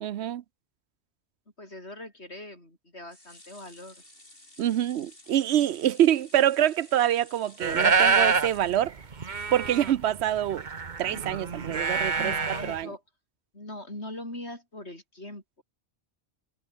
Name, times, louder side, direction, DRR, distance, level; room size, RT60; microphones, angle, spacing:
voice 1, 0.0-0.4 4.6-8.9 9.5-10.7 11.0-12.3 12.7-12.9, right 11 dB, 90° right, 0.9 m, -25 dB
voice 2, 1.6-4.0 11.1-11.3 12.2-13.0 13.5-15.6, left 1 dB, 90° left, 8.2 m, -41 dB
sound 1, 3.1-9.4 9.8-9.9 10.2-10.3, left 1 dB, 60° left, 7.3 m, -53 dB
sound 2, 7.6-8.5 8.9-9.0 9.1-12.8, right 5 dB, 45° right, 1.4 m, -26 dB
omnidirectional pair, 1.1 m